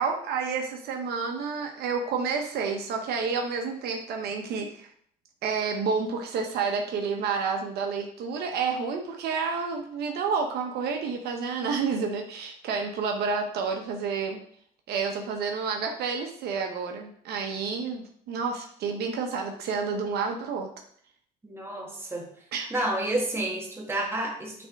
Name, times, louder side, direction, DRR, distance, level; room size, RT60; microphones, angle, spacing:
voice 1, 0.0-4.9 5.4-14.4 14.9-20.7 22.5-22.7, right 5 dB, 70° right, 3 dB, 0.9 m, -29 dB
voice 2, 21.4-22.3 22.7-24.7, right 1 dB, 15° right, -1 dB, 1.7 m, -30 dB
8.9 x 3.5 x 3.5 m, 0.62 s
cardioid pair, 110°, 17 cm